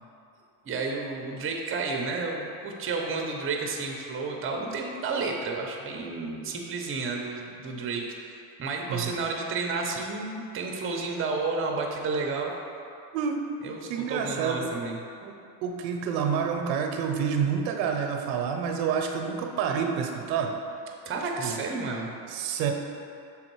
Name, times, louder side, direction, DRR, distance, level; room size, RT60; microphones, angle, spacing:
voice 1, 0.7-12.5 13.6-15.0 21.1-22.1, right 4 dB, 25° right, 1 dB, 0.8 m, -31 dB
voice 2, 13.9-14.7 15.2-15.4 15.6-20.5 21.4-21.7 22.3-22.7, right 7 dB, 85° right, 4 dB, 0.8 m, -28 dB
6.4 x 3.7 x 4.6 m, 2.6 s
supercardioid pair, 115°, 50 cm